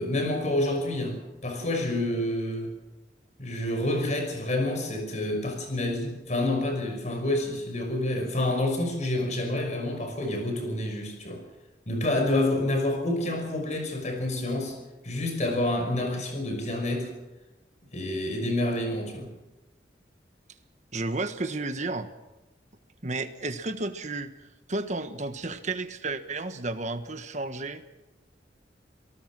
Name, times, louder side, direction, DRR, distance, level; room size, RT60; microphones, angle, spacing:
voice 1, 0.0-2.7 3.4-11.4 11.9-14.7 15.0-17.1 17.9-19.3, left 1 dB, 40° left, 4 dB, 6.0 m, -28 dB
voice 2, 20.9-22.1 23.0-24.3 24.7-27.8, right 2 dB, 40° right, 9 dB, 1.5 m, -32 dB
27.5 x 18.5 x 6.2 m, 1.0 s
head